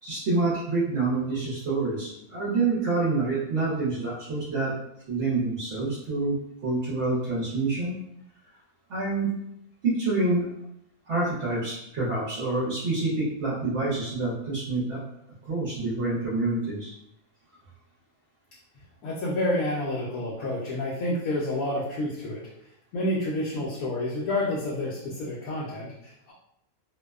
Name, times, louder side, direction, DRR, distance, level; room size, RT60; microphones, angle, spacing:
voice 1, 0.0-4.7 5.1-6.4 6.6-8.0 8.9-9.3 9.8-10.5 11.1-15.0 15.4-16.9, right 3 dB, 60° right, -7 dB, 0.8 m, -27 dB
voice 2, 19.0-22.4 22.9-26.3, left 1 dB, 70° left, -5 dB, 0.9 m, -29 dB
2.6 x 2.1 x 2.2 m, 0.77 s
omnidirectional pair, 1.6 m